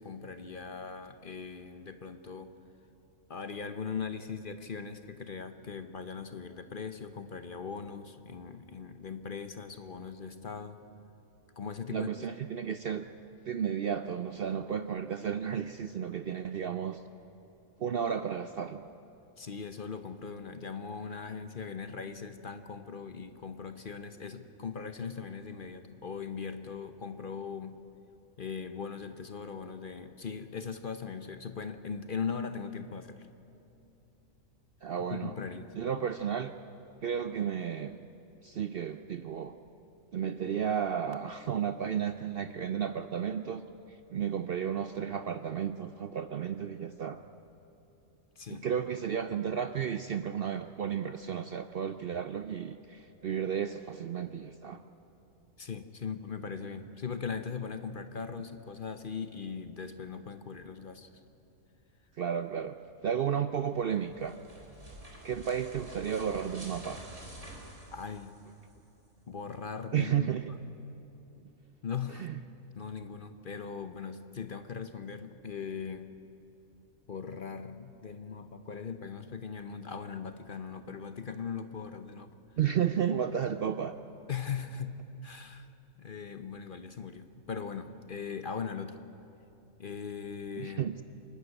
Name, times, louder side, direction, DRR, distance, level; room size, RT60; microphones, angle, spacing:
voice 1, 0.0-2.6 3.3-10.8 11.6-12.1 19.4-27.8 28.4-33.3 35.1-35.8 48.4-48.7 55.6-61.2 67.9-68.4 69.3-70.4 71.8-72.3 72.8-76.1 77.1-82.3 84.3-85.7 86.0-89.0 89.8-90.8, left 6 dB, 45° left, 9 dB, 0.9 m, -39 dB
voice 2, 11.9-13.0 13.5-17.0 17.8-18.8 34.8-35.3 35.7-36.5 37.0-38.0 38.4-39.5 40.1-47.2 48.5-54.8 62.2-64.4 65.2-67.1 69.9-70.5 72.1-72.4 82.6-84.0 90.6-91.0, right 8 dB, 60° right, 10 dB, 0.6 m, -33 dB
sound 1, 63.8-68.7, right 1 dB, 25° right, 3.4 m, -48 dB
26.5 x 12.0 x 9.6 m, 3.0 s
omnidirectional pair, 1.4 m